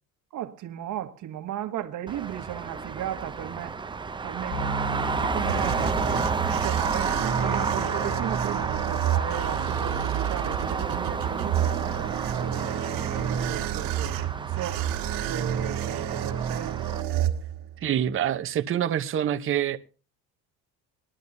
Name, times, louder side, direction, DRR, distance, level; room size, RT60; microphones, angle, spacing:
voice 1, 0.3-3.8 4.2-6.0 6.5-14.8 15.3-16.8, right 11 dB, 55° right, 1.6 m, -36 dB
Traffic noise roadway noise, 2.1-17.0, right 4 dB, 15° right, 0.6 m, -31 dB
sound 1, 4.5-15.4, left 1 dB, 20° left, 3.1 m, -40 dB
sound 2, 5.0-17.9, right 10 dB, 75° right, 1.8 m, -30 dB
voice 2, 17.8-19.8, right 10 dB, 35° right, 0.9 m, -26 dB
20.5 x 11.5 x 2.7 m
cardioid pair, 120°, 35 cm